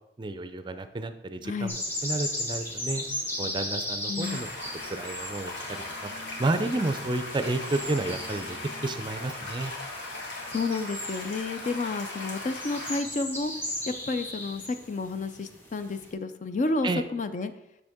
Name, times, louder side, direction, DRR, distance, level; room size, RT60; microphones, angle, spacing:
voice 1, 0.2-3.0 3.4-4.5 4.9-6.1 6.4-8.6 8.8-9.7 16.8-17.0, right 2 dB, 25° right, 10 dB, 0.4 m, -31 dB
voice 2, 1.4-1.8 4.1-4.4 10.5-13.5 13.9-17.5, left 3 dB, 45° left, 10 dB, 0.4 m, -31 dB
sound 1, 1.7-16.1, left 1 dB, 15° left, 1.8 m, -38 dB
sound 2, 4.2-13.0, left 2 dB, 80° left, 1.9 m, -38 dB
sound 3, 4.5-12.2, left 4 dB, 65° left, 1.2 m, -54 dB
7.8 x 6.4 x 3.6 m, 0.84 s
head